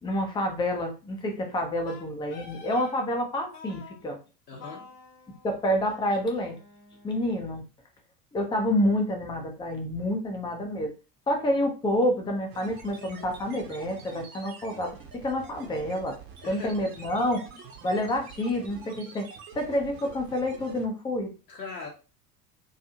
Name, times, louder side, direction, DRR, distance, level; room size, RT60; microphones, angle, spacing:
voice 1, 0.0-4.2 5.4-6.6 7.0-7.6 8.3-10.9 11.3-14.9 15.2-16.2 16.5-17.4 17.8-19.3 19.5-21.3, left 1 dB, 10° left, 3 dB, 0.5 m, -28 dB
Wind instrument woodwind instrument, 1.9-3.0 3.5-4.0 4.6-7.6, left 4 dB, 40° left, 0.8 m, -49 dB
voice 2, 4.5-4.9 16.4-16.9 21.5-21.9, left 3 dB, 75° left, -1 dB, 0.8 m, -39 dB
sound 1, 12.5-20.9, right 5 dB, 55° right, 0.8 m, -46 dB
2.5 x 2.3 x 2.7 m, 0.33 s
figure-of-eight pair, 70°, 49 cm